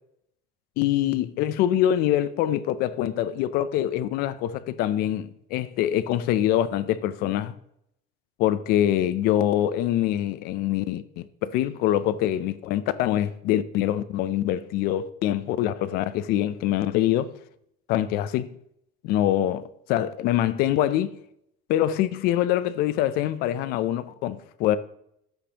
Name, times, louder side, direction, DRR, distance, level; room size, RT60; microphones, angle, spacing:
voice 1, 0.8-7.5 8.4-17.3 17.9-18.6 19.0-21.2 21.7-24.8, left 12 dB, 50° left, 0.5 m, -24 dB
13.5 x 5.2 x 2.9 m
cardioid pair, 165°, 20 cm